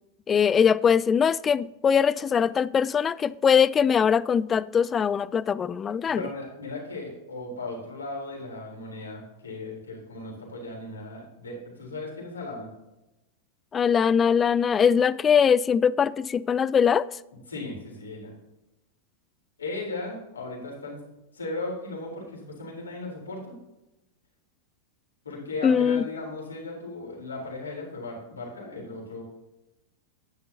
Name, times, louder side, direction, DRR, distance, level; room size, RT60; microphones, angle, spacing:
voice 1, 0.3-6.2 13.7-17.1 25.6-26.0, left 7 dB, 20° left, 0.3 m, -22 dB
voice 2, 5.9-12.7 17.5-18.3 19.6-21.0 21.3-23.6 25.2-29.2, left 2 dB, 75° left, 3.8 m, -37 dB
11.0 x 10.5 x 2.8 m
figure-of-eight pair, 90°, 0 cm